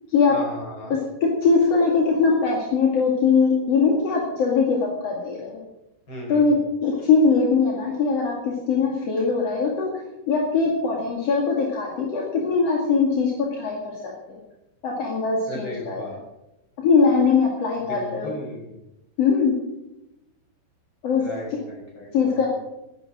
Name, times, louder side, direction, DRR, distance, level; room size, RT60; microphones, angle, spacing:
voice 1, 0.3-1.0 6.1-6.6 15.5-16.2 17.8-18.8 21.2-22.5, left 1 dB, 25° left, 0 dB, 5.3 m, -36 dB
voice 2, 0.9-5.5 6.3-6.6 6.8-8.3 8.7-9.9 10.3-14.4 14.8-16.0 16.8-18.3 19.2-19.6 21.0-21.2 22.1-22.5, left 5 dB, 45° left, -1 dB, 2.4 m, -21 dB
15.0 x 11.0 x 7.6 m, 0.93 s
omnidirectional pair, 5.4 m